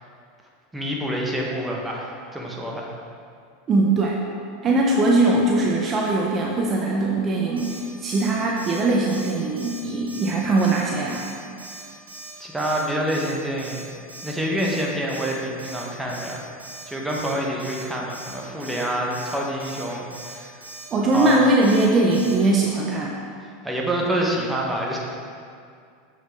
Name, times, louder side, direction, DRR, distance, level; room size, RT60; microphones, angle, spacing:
voice 1, 0.7-2.9 12.4-13.9 14.2-16.4 16.9-20.6 21.1-21.3 23.6-25.0, right 1 dB, 10° right, -2 dB, 1.4 m, -27 dB
voice 2, 3.7-4.2 4.6-11.2 20.9-23.2, right 2 dB, 35° right, -2 dB, 0.9 m, -21 dB
Alarm, 7.6-7.8 8.1-8.3 8.6-8.8 9.1-9.3 9.6-9.8 10.1-10.3 10.6-10.8 11.1-11.3 11.6-11.8 12.1-12.3 12.6-12.8 13.1-13.3 13.6-13.8 14.1-14.3 14.6-14.8 15.1-15.3 15.6-15.8 16.1-16.3 16.6-16.8 17.1-17.3 17.6-17.8 18.1-18.3 18.6-18.8 19.1-19.3 19.6-19.8 20.1-20.3 20.6-20.8 21.1-21.4 21.6-21.9 22.1-22.3, right 2 dB, 75° right, 2.0 m, -40 dB
7.4 x 6.2 x 3.8 m, 2.3 s
hypercardioid pair, 90°, 0 cm